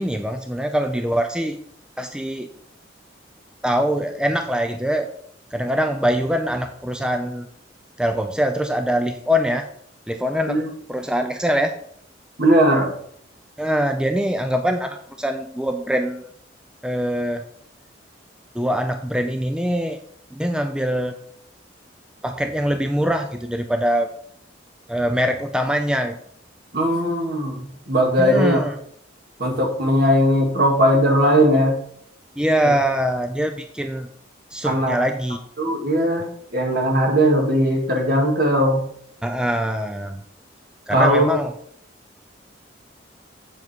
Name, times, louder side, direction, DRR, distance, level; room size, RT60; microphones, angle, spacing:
voice 1, 0.0-1.6 2.0-2.5 3.6-5.1 5.5-7.5 8.0-9.7 10.1-10.6 10.9-11.7 13.6-16.3 16.8-17.4 18.5-20.0 20.3-21.1 22.2-24.1 24.9-26.2 28.2-28.8 32.4-34.1 34.5-35.4 39.2-40.2 40.9-41.5, equal, 5° right, 6 dB, 0.5 m, -23 dB
voice 2, 12.4-12.9 26.7-28.6 29.4-31.8 32.6-32.7 34.6-35.0 35.6-36.3 36.5-38.8 40.9-41.4, equal, 55° right, 1 dB, 2.3 m, -18 dB
8.0 x 7.5 x 4.5 m, 0.65 s
head